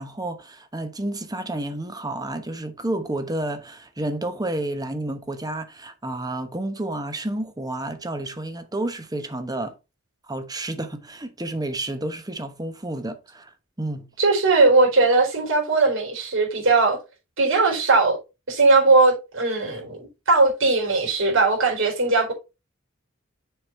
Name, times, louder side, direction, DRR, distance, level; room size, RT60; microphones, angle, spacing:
voice 1, 0.0-9.7 10.3-13.5 13.8-14.1, right 1 dB, 20° right, 1.1 m, -30 dB
voice 2, 14.2-17.0 17.4-18.2 18.5-22.3, right 3 dB, 70° right, 4.3 m, -19 dB
7.0 x 5.1 x 4.4 m
head